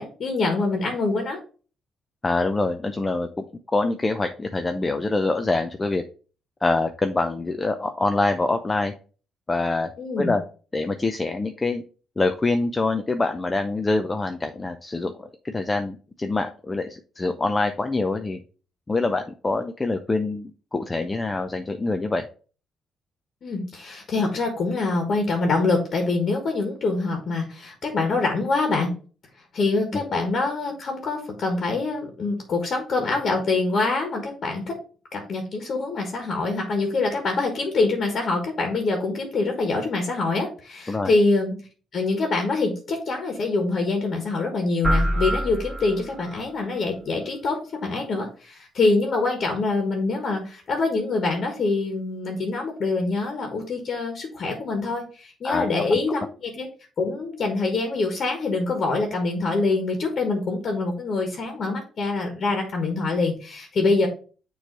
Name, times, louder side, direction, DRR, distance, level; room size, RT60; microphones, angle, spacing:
voice 1, 0.0-1.4 10.0-10.3 23.4-28.9 29.5-34.8 35.1-41.6 41.9-56.7 57.0-64.1, left 3 dB, 55° left, 3 dB, 1.6 m, -25 dB
voice 2, 2.2-6.0 6.6-8.9 9.5-9.9 10.2-10.4 10.7-11.8 12.2-18.4 18.9-22.2 29.9-30.0 40.9-41.1 55.4-55.6, left 3 dB, 20° left, 6 dB, 0.6 m, -25 dB
sound 1, 44.8-46.4, right 1 dB, 5° right, 2.3 m, -25 dB
6.6 x 3.2 x 4.7 m, 0.38 s
cardioid pair, 90°, 0 cm